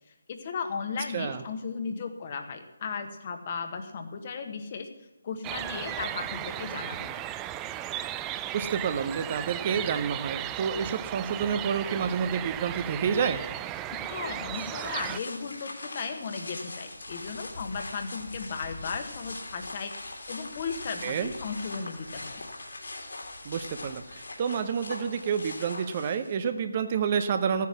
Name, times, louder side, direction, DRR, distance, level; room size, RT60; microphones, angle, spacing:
voice 1, 0.3-4.9 5.2-7.2 13.9-19.9 20.3-22.5, left 5 dB, 30° left, 6 dB, 1.4 m, -36 dB
sound 1, 5.4-15.2, right 12 dB, 15° right, 0.3 m, -35 dB
voice 2, 8.5-13.5 21.0-21.3 23.4-27.7, right 7 dB, 30° right, 9 dB, 0.7 m, -29 dB
sound 2, 14.5-26.5, left 2 dB, 60° left, 3.1 m, -41 dB
15.0 x 9.4 x 6.0 m, 1.1 s
figure-of-eight pair, 150°, 0 cm